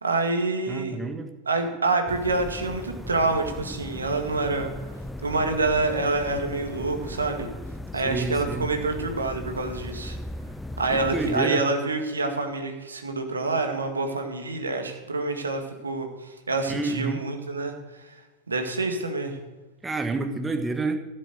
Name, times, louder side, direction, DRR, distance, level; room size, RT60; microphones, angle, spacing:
voice 1, 0.0-1.0 1.5-4.7 5.2-7.5 7.9-10.2 10.8-17.7 18.5-19.4, right 3 dB, 75° right, 4 dB, 2.0 m, -27 dB
voice 2, 0.7-1.3 8.0-8.7 10.9-11.6 16.7-17.2 19.8-21.0, right 3 dB, 10° right, 6 dB, 1.5 m, -29 dB
sound 1, 2.1-11.4, left 1 dB, 5° left, 0.6 m, -38 dB
15.0 x 7.6 x 7.7 m, 1.2 s
figure-of-eight pair, 90°, 0 cm